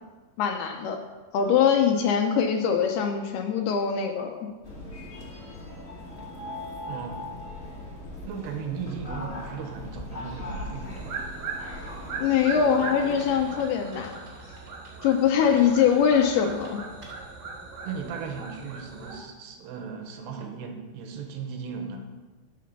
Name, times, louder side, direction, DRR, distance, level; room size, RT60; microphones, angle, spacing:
voice 1, 0.4-1.0 1.3-4.5 12.2-14.2 15.0-16.8, left 7 dB, 75° left, 4 dB, 2.5 m, -23 dB
sound 1, 4.6-13.6, left 1 dB, 30° left, 1.7 m, -39 dB
voice 2, 6.9-7.3 8.2-11.2 17.8-22.1, right 5 dB, 75° right, 4 dB, 3.2 m, -37 dB
sound 2, 10.9-19.2, right 4 dB, 60° right, 3.5 m, -39 dB
sound 3, 12.4-17.5, equal, 25° right, 2.3 m, -49 dB
12.0 x 6.7 x 6.7 m, 1.3 s
omnidirectional pair, 4.9 m